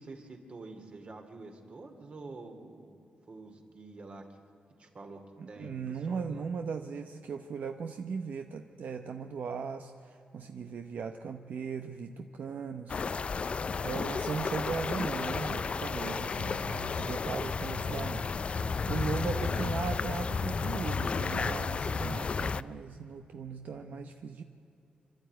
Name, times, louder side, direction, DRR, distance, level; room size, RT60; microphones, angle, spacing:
voice 1, 0.0-3.0 3.3-4.3 4.8-5.2 5.5-6.4 18.5-18.9 19.3-19.9, right 3 dB, 45° right, 4 dB, 2.5 m, -47 dB
voice 2, 5.4-13.0 13.8-18.3 18.8-24.4, right 6 dB, 70° right, 6 dB, 0.8 m, -38 dB
sound 1, 12.9-22.6, left 5 dB, 40° left, 0.4 m, -32 dB
26.5 x 12.0 x 9.2 m, 2.9 s
wide cardioid pair, 105°, 3 cm